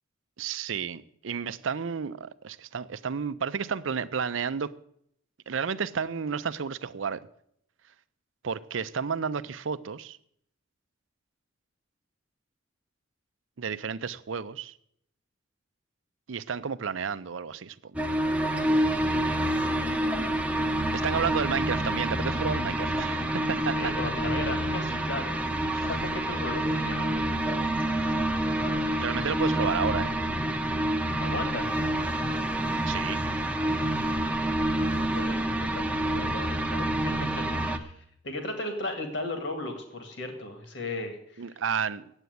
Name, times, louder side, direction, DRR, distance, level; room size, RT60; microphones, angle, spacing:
voice 1, 0.4-4.7 5.5-7.2 8.4-10.2 13.6-14.7 16.3-17.8 20.9-23.9 25.7-25.9 29.0-30.1 32.8-33.2 41.4-42.1, right 6 dB, 80° right, 0.6 m, -31 dB
sound 1, 17.9-37.8, right 1 dB, 5° right, 0.7 m, -28 dB
voice 2, 23.7-27.1 31.2-31.7 34.9-41.6, left 2 dB, 60° left, 1.9 m, -36 dB
8.9 x 8.3 x 9.3 m
head